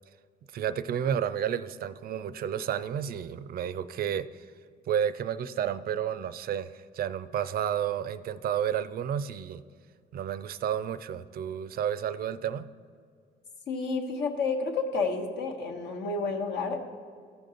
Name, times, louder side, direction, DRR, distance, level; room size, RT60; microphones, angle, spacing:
voice 1, 0.5-4.3 4.9-9.6 10.1-12.7, right 9 dB, 55° right, 13 dB, 0.4 m, -31 dB
voice 2, 13.7-16.8, left 4 dB, 75° left, 4 dB, 1.1 m, -30 dB
14.0 x 5.3 x 3.8 m, 2.1 s
cardioid pair, 120°, 18 cm